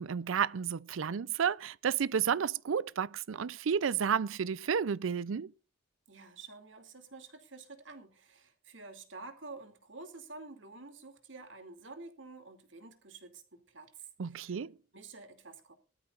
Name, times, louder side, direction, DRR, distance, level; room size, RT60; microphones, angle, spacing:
voice 1, 0.0-5.5 14.2-14.7, right 7 dB, 90° right, 0.5 m, -31 dB
voice 2, 6.1-14.6 14.9-15.7, right 3 dB, 70° right, 2.6 m, -49 dB
20.0 x 13.0 x 2.5 m
head